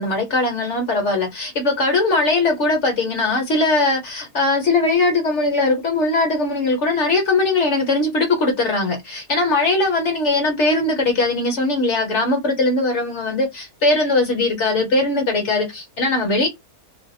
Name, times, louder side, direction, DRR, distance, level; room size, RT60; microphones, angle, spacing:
voice 1, 0.0-16.5, left 2 dB, 55° left, 1.1 m, -20 dB
2.7 x 2.0 x 3.9 m
omnidirectional pair, 1.6 m